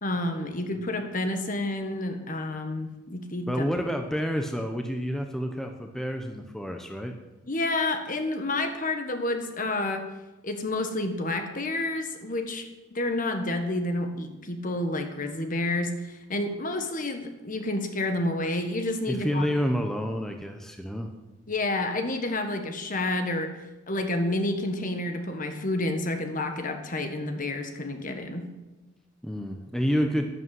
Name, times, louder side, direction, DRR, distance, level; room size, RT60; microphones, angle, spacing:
voice 1, 0.0-3.6 7.5-10.0 10.4-19.5 21.5-23.5 23.9-28.4, left 2 dB, 40° left, 6 dB, 1.5 m, -29 dB
voice 2, 3.5-7.1 19.1-21.1 29.2-30.2, equal, ahead, 4 dB, 0.9 m, -29 dB
11.5 x 10.5 x 7.7 m, 1.1 s
head